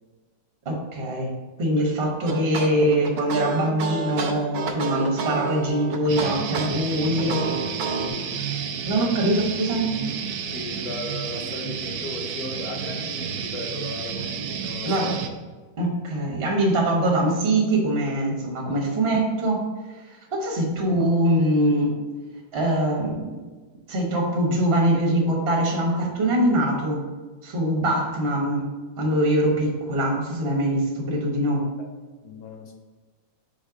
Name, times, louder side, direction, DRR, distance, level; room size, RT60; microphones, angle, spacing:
voice 1, 0.6-1.3 1.6-7.3 8.9-10.0 14.8-15.1 15.8-19.6 20.3-22.0 22.5-23.3 23.9-27.1 27.4-28.7 29.0-31.7, right 1 dB, 35° right, -1 dB, 1.2 m, -23 dB
sound 1, 2.3-8.1, right 4 dB, 90° right, 1.6 m, -29 dB
sound 2, 6.1-15.3, right 7 dB, 75° right, 1.1 m, -31 dB
voice 2, 6.8-8.4 10.5-15.3 18.7-18.8 31.8-31.9 32.2-32.7, left 3 dB, 65° left, 3 dB, 0.9 m, -37 dB
5.1 x 4.2 x 5.0 m, 1.3 s
omnidirectional pair, 2.2 m